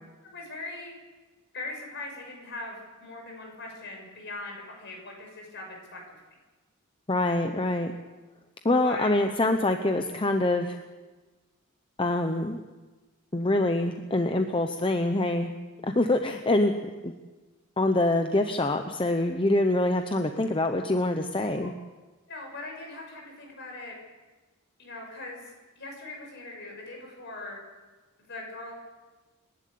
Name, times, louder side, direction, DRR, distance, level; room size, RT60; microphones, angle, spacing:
voice 1, 0.2-0.9 1.5-6.0 8.8-9.1 21.5-21.7 22.3-23.9 24.8-25.4 25.8-27.6 28.3-28.7, left 2 dB, 55° left, 1 dB, 6.4 m, -40 dB
voice 2, 7.1-7.9 8.6-10.8 12.0-12.6 13.3-15.5 15.8-16.7 17.0-17.1 17.8-21.7, left 2 dB, 25° left, 6 dB, 0.8 m, -25 dB
26.0 x 11.5 x 8.5 m, 1.3 s
head